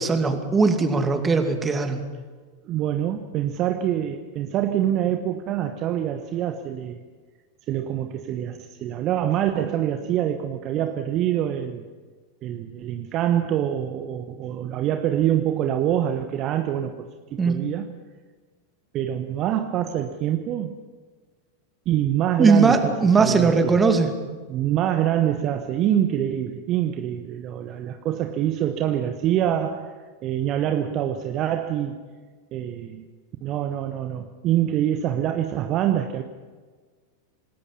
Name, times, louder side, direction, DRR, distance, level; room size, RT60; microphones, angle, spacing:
voice 1, 0.0-2.0 17.4-17.6 22.4-24.1, right 4 dB, 15° right, 6 dB, 2.5 m, -19 dB
voice 2, 2.6-7.0 7.7-11.9 12.4-17.9 18.9-20.8 21.9-23.8 24.5-29.9 30.2-32.0 32.5-33.0 33.4-36.2, right 11 dB, 35° right, 8 dB, 1.1 m, -25 dB
27.0 x 20.0 x 5.6 m, 1.4 s
figure-of-eight pair, 90°, 0 cm